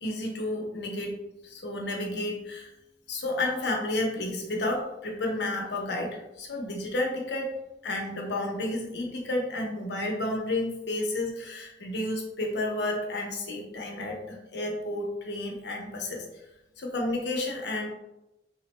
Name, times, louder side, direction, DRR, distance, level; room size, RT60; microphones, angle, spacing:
voice 1, 0.0-1.2 1.4-2.7 3.1-7.5 7.8-16.3 16.8-17.9, left 1 dB, 70° left, 0 dB, 0.7 m, -31 dB
3.5 x 2.1 x 2.9 m, 0.93 s
head